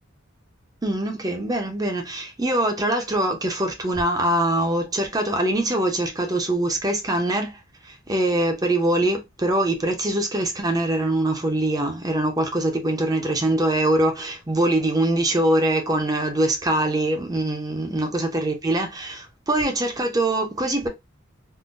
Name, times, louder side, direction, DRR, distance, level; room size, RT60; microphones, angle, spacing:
voice 1, 0.8-20.9, right 1 dB, 20° right, 0.6 m, -23 dB
3.6 x 2.1 x 2.5 m
head